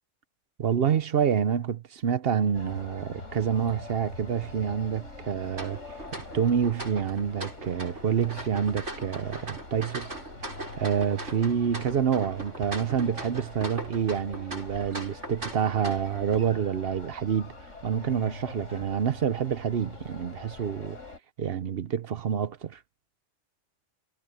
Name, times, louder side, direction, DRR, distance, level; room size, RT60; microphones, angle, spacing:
voice 1, 0.6-5.8 6.1-10.1 10.8-17.5 17.8-21.0 21.4-22.8, right 8 dB, 55° right, 0.9 m, -27 dB
sound 1, 2.5-21.2, left 2 dB, 90° left, 5.1 m, -44 dB
sound 2, 5.5-16.4, right 2 dB, 75° right, 7.7 m, -40 dB
omnidirectional pair, 1.2 m